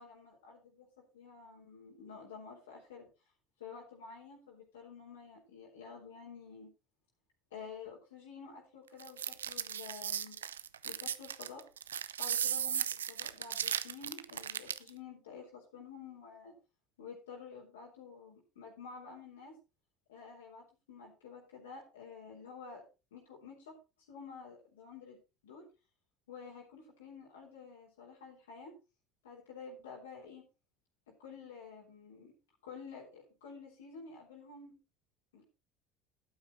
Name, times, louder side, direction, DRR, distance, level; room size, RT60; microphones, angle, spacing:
voice 1, 0.0-3.1 3.6-6.7 7.5-10.4 10.8-11.6 12.2-16.6 17.0-19.6 20.1-22.8 23.1-23.8 24.1-25.2 25.4-25.7 26.3-28.7 29.2-30.5 31.1-32.3 32.6-34.8 35.3-35.4, left 5 dB, 75° left, -2 dB, 4.0 m, -50 dB
sound 1, 9.0-14.9, right 9 dB, 80° right, 0.5 m, -36 dB
12.0 x 8.9 x 4.1 m, 0.31 s
figure-of-eight pair, 70°, 0 cm